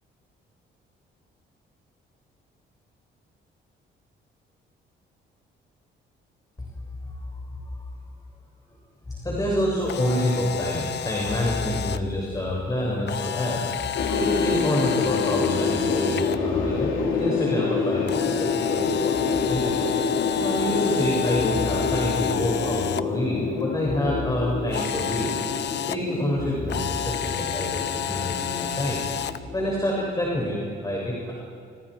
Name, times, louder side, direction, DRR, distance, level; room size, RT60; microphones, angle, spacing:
voice 1, 9.1-19.8 20.4-25.4 25.9-29.1 29.5-31.3, left 1 dB, 20° left, -3 dB, 7.1 m, -27 dB
Camera, 9.8-12.0 13.1-16.4 18.1-23.0 24.7-26.0 26.7-29.4, left 9 dB, 60° left, 1.1 m, -30 dB
sound 1, 14.0-30.1, left 5 dB, 80° left, 3.3 m, -28 dB
30.0 x 29.5 x 5.1 m, 2.4 s
cardioid pair, 90°, 20 cm